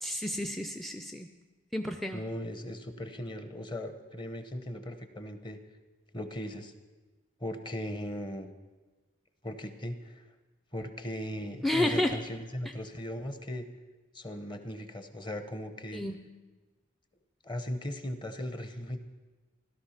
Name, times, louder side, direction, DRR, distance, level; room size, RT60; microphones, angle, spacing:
voice 1, 0.0-1.3 1.7-2.2 11.6-12.2 15.9-16.1, left 1 dB, ahead, 7 dB, 0.4 m, -30 dB
voice 2, 2.1-5.6 6.1-6.7 7.4-8.5 9.4-10.2 10.7-13.7 14.1-16.0 17.4-19.0, equal, 25° left, 9 dB, 0.9 m, -38 dB
16.5 x 12.0 x 5.8 m, 1.3 s
head